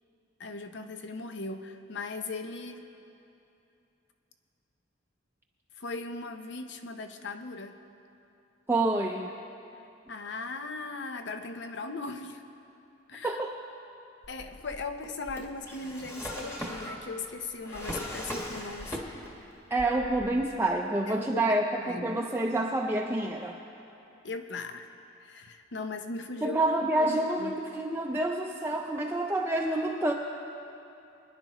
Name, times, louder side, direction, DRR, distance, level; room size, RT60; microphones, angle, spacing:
voice 1, 0.4-2.8 5.8-7.8 10.1-12.5 13.1-13.4 14.3-19.0 21.1-21.6 21.8-22.3 24.2-24.9 25.2-27.6, left 3 dB, 65° left, 7 dB, 0.7 m, -38 dB
voice 2, 8.7-9.3 13.2-13.6 19.7-23.6 26.4-30.1, right 2 dB, 10° right, 0 dB, 0.5 m, -28 dB
Drawer open or close, 14.2-19.4 19.7-20.6, left 1 dB, 15° left, 1.4 m, -39 dB
23.5 x 10.5 x 3.0 m, 2.8 s
head